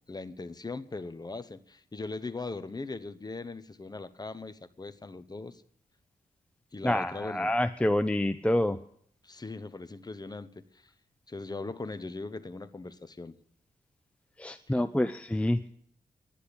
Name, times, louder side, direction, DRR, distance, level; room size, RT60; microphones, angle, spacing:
voice 1, 0.0-5.6 6.7-7.5 9.2-10.6 11.3-13.4, left 3 dB, 25° left, 11 dB, 1.0 m, -39 dB
voice 2, 6.8-8.8 14.4-15.7, left 1 dB, 10° left, 9 dB, 0.6 m, -27 dB
11.5 x 10.0 x 8.7 m, 0.64 s
cardioid pair, 75°, 15 cm